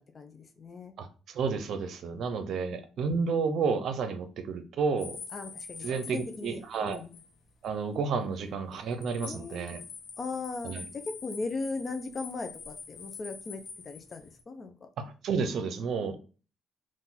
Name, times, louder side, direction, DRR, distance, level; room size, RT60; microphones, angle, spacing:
voice 1, 0.1-0.9 2.7-2.8 5.3-7.1 9.2-9.7 10.2-14.7, left 3 dB, 40° left, 7 dB, 0.6 m, -38 dB
voice 2, 1.0-5.2 5.8-7.0 7.6-9.8 10.6-10.8 15.0-16.2, right 5 dB, 70° right, 9 dB, 0.6 m, -31 dB
sound 1, 5.0-7.3 7.6-7.7 8.7-14.4, left 5 dB, 60° left, 0.9 m, -45 dB
3.8 x 2.5 x 4.0 m, 0.35 s
cardioid pair, 90°, 0 cm